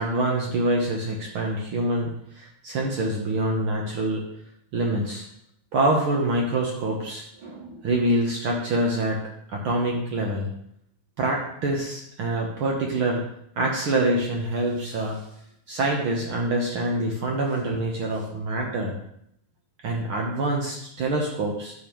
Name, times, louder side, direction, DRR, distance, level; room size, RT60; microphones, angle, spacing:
voice 1, 0.0-2.1 2.4-4.2 4.7-5.2 5.7-9.2 9.5-10.5 11.2-13.2 13.6-15.2 15.7-19.0 19.8-21.7, right 2 dB, 75° right, 0 dB, 1.2 m, -25 dB
10.5 x 6.9 x 3.0 m, 0.72 s
omnidirectional pair, 3.7 m